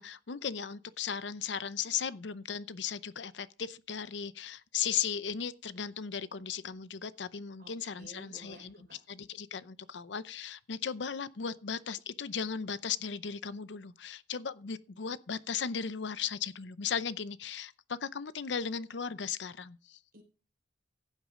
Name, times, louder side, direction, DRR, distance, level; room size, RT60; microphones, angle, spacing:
voice 1, 0.0-20.0, left 7 dB, 80° left, 0.7 m, -37 dB
voice 2, 7.6-9.0 20.1-20.2, right 1 dB, 55° right, 4.0 m, -53 dB
15.5 x 8.2 x 3.7 m
head